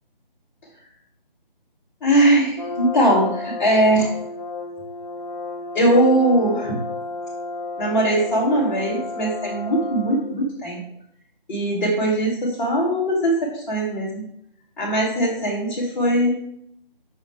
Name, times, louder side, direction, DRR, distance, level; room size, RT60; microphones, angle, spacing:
voice 1, 2.0-4.1 5.7-6.8 7.8-10.8 11.5-14.2 14.8-16.4, right 1 dB, 5° left, -10 dB, 1.0 m, -20 dB
Brass instrument, 2.6-10.4, left 3 dB, 30° left, 0.8 m, -32 dB
5.7 x 5.2 x 4.6 m, 0.73 s
figure-of-eight pair, 160°, 29 cm